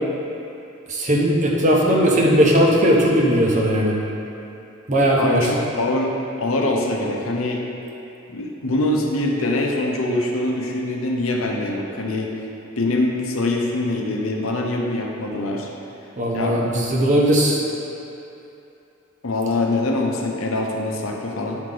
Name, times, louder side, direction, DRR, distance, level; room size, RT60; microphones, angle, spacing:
voice 1, 0.9-4.0 4.9-5.5 16.2-17.6, equal, 40° right, -2 dB, 1.0 m, -18 dB
voice 2, 5.2-6.1 6.4-7.6 8.3-12.3 12.8-15.7 16.3-16.6 19.2-21.6, left 2 dB, 90° left, 0 dB, 0.9 m, -23 dB
9.4 x 4.7 x 3.9 m, 2.8 s
head